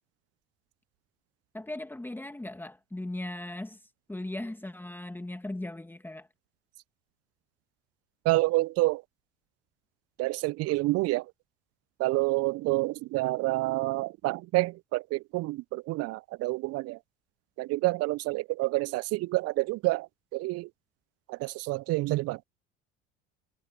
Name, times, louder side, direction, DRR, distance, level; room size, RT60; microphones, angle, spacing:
voice 1, 1.5-6.3, left 1 dB, 5° left, 2.2 m, -38 dB
voice 2, 8.2-9.0 10.2-11.2 12.0-17.0 17.6-20.7 21.3-22.4, right 20 dB, 50° right, 0.9 m, -28 dB
figure-of-eight pair, 65°, 32 cm